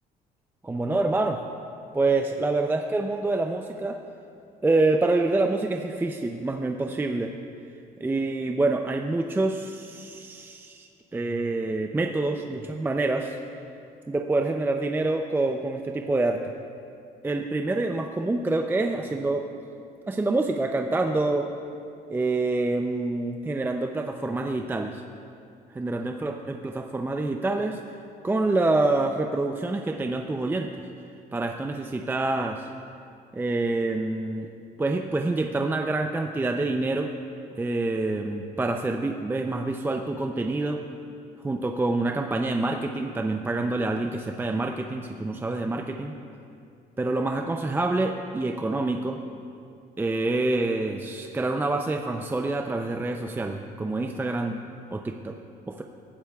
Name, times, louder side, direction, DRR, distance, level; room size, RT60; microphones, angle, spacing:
voice 1, 0.6-1.4 1.9-4.0 4.6-7.3 8.0-13.4 14.1-16.5 17.2-19.4 20.1-21.5 22.1-25.0 25.7-27.8 28.2-30.7 31.3-32.7 33.3-34.5 34.8-37.1 37.6-40.8 41.4-46.1 47.0-49.2 50.0-54.6 54.9-55.4 55.7-55.8, right 2 dB, 10° right, 4 dB, 0.5 m, -26 dB
18.5 x 11.0 x 2.3 m, 2.5 s
cardioid pair, 110°, 17 cm